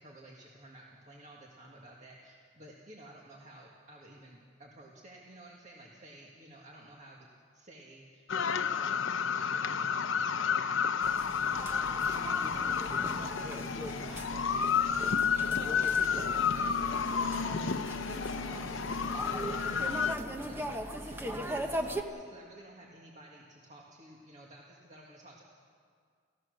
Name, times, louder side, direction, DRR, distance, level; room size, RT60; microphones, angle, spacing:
voice 1, 0.0-10.8 11.7-12.7 13.2-20.7 21.0-25.4, right 1 dB, 35° right, -2 dB, 1.9 m, -53 dB
sound 1, 8.3-20.2, left 6 dB, 70° left, 0.7 m, -31 dB
sound 2, 11.0-22.0, equal, 10° right, 1.0 m, -39 dB
29.5 x 15.5 x 6.5 m, 2.1 s
head